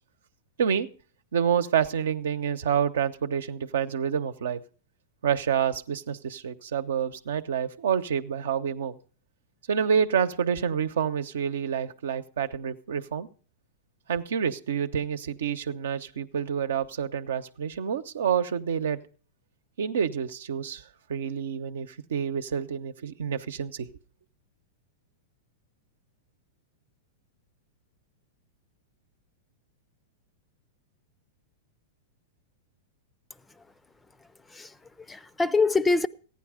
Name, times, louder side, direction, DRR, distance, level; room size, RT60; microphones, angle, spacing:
voice 1, 1.3-4.6 5.2-9.0 9.7-13.3 14.1-19.0 19.8-20.8 21.1-23.9, right 7 dB, 80° right, 0.9 m, -28 dB
voice 2, 34.5-36.1, left 3 dB, 10° left, 0.5 m, -25 dB
14.5 x 10.0 x 5.0 m
hypercardioid pair, 120°, 0 cm